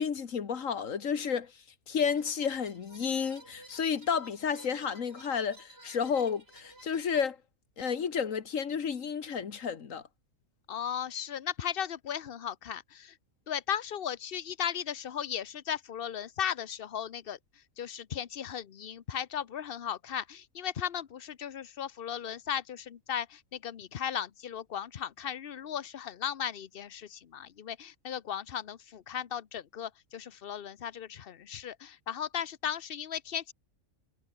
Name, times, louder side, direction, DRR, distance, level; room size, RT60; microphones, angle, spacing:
voice 1, 0.0-1.5 1.9-7.4 7.8-10.0, left 6 dB, 60° left, 1.8 m, -31 dB
sound 1, 2.1-7.2, right 2 dB, 40° right, 5.2 m, -55 dB
voice 2, 10.7-13.1 13.5-17.4 17.8-33.5, left 9 dB, 45° left, 0.9 m, -36 dB
omnidirectional pair, 1.5 m